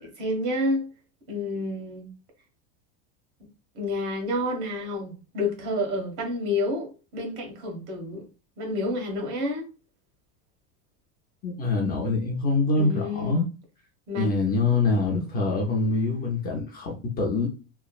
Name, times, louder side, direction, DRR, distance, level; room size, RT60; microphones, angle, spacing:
voice 1, 0.2-0.9 1.3-2.1 3.7-8.2 8.6-9.6 12.8-13.4 14.1-14.3, left 1 dB, 75° right, 1.4 m, -29 dB
voice 2, 11.4-13.4 14.2-17.5, left 3 dB, 25° left, 0.4 m, -25 dB
3.1 x 2.1 x 2.3 m
supercardioid pair, 150°, 42 cm